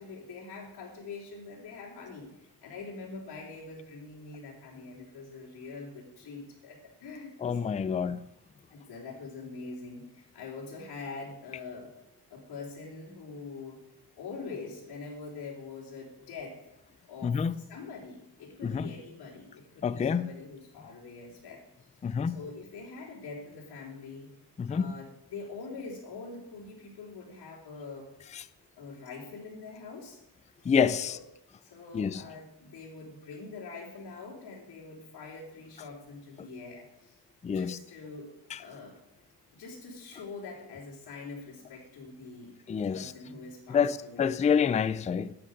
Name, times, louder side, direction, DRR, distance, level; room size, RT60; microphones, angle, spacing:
voice 1, 0.0-7.8 8.7-11.9 12.3-13.8 14.2-16.6 17.1-21.6 22.2-24.3 24.7-28.1 28.8-30.2 31.0-31.2 31.6-37.2 37.4-38.3 38.6-39.0 39.5-42.5 42.9-44.3, left 4 dB, 65° left, 3.7 m, -44 dB
voice 2, 7.4-8.2 17.2-17.5 18.6-18.9 19.8-20.3 22.0-22.4 24.6-24.9 28.3-28.4 30.7-31.2 31.9-32.2 37.4-37.8 38.5-38.6 42.7-43.1 43.7-45.3, left 6 dB, 20° left, 0.4 m, -27 dB
13.0 x 8.8 x 6.5 m
cardioid pair, 165°, 40 cm